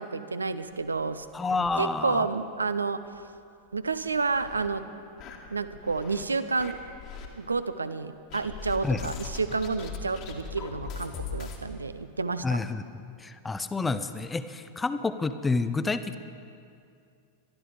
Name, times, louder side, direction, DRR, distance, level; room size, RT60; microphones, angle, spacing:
voice 1, 0.0-1.3 1.8-3.0 3.7-4.8 5.5-6.8 7.4-12.6, right 4 dB, 75° right, 12 dB, 0.6 m, -30 dB
sound 1, 0.7-2.3 2.6-2.7 3.1-3.2 3.8-4.7 5.2-6.2 6.6-7.3 8.3-11.6, left 6 dB, 40° left, 2.0 m, -41 dB
voice 2, 1.3-2.3 8.8-9.0 12.4-16.2, left 3 dB, 10° left, 12 dB, 0.7 m, -29 dB
22.0 x 12.5 x 5.0 m, 2.4 s
figure-of-eight pair, 90°, 0 cm